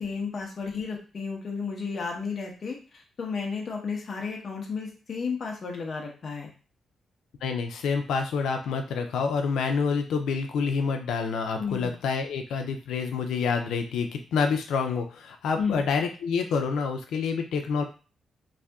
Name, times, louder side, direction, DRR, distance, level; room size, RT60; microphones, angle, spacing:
voice 1, 0.0-6.5 11.6-11.9 15.6-15.8, left 5 dB, 40° left, -1 dB, 0.8 m, -33 dB
voice 2, 7.4-17.8, left 5 dB, 90° left, 5 dB, 0.4 m, -27 dB
2.7 x 2.5 x 3.4 m, 0.35 s
cardioid pair, 145°, 0 cm